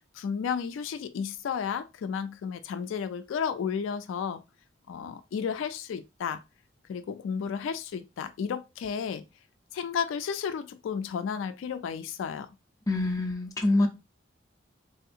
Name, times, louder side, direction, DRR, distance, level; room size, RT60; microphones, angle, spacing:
voice 1, 0.2-4.4 4.9-6.4 6.9-9.2 9.7-12.5, left 7 dB, 75° left, 0.3 m, -32 dB
voice 2, 12.9-13.9, left 2 dB, 20° left, 0.5 m, -25 dB
3.4 x 2.7 x 2.4 m
head